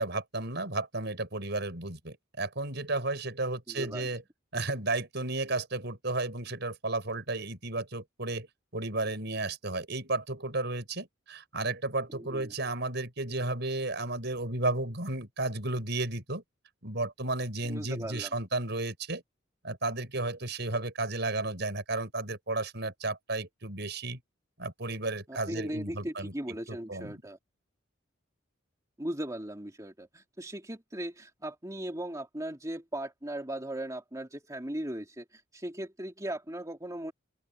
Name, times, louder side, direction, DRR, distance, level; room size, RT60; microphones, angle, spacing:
voice 1, 0.0-4.2 4.5-8.5 8.7-16.4 16.8-19.2 19.6-24.2 24.6-26.3 26.9-27.2, right 2 dB, 60° right, 6.4 m, -33 dB
voice 2, 3.7-4.1 12.1-12.5 17.6-18.3 25.3-27.4 29.0-37.1, right 1 dB, 15° right, 2.9 m, -38 dB
open air
head